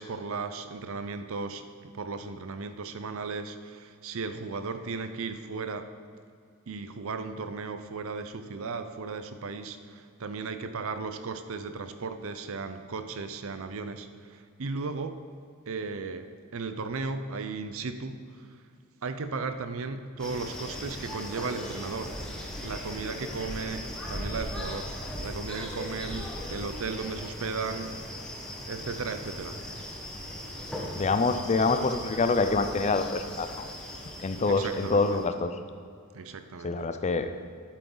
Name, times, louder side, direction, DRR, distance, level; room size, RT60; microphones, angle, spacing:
voice 1, 0.0-5.9 6.7-15.2 15.7-18.2 19.0-22.2 22.6-28.0 28.7-29.6 34.5-35.1 36.1-36.9, right 4 dB, 65° right, 10 dB, 0.6 m, -36 dB
sound 1, 20.2-35.3, equal, 5° left, 1.3 m, -38 dB
voice 2, 31.0-33.5 34.2-35.5 36.6-37.3, left 3 dB, 30° left, 9 dB, 0.5 m, -26 dB
11.5 x 8.5 x 3.9 m, 2.3 s
head